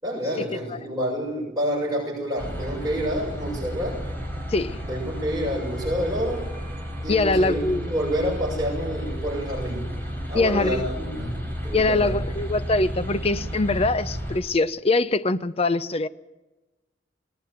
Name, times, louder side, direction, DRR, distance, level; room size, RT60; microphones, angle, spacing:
voice 1, 0.0-4.0 4.9-6.5 7.0-10.0 10.3-12.4, equal, 20° right, 7.1 m, -28 dB
sound 1, 2.4-14.4, equal, 10° left, 4.3 m, -32 dB
voice 2, 4.5-4.8 7.1-7.8 10.3-10.9 11.7-16.1, left 2 dB, 35° left, 0.6 m, -23 dB
20.0 x 18.5 x 7.9 m
head